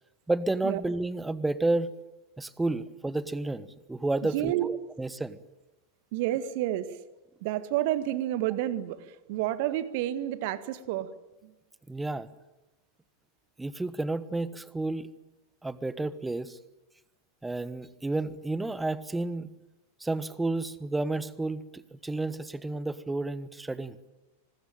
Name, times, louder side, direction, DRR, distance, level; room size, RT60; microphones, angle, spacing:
voice 1, 0.3-1.9 2.4-5.4 11.9-12.3 13.6-15.1 15.6-16.6 17.4-19.5 20.0-24.0, right 2 dB, 5° right, 17 dB, 1.2 m, -31 dB
voice 2, 4.3-4.7 6.1-7.0 7.4-11.1 11.4-11.5, right 13 dB, 50° right, 14 dB, 1.8 m, -30 dB
25.5 x 20.5 x 9.1 m, 1.0 s
figure-of-eight pair, 90°, 0 cm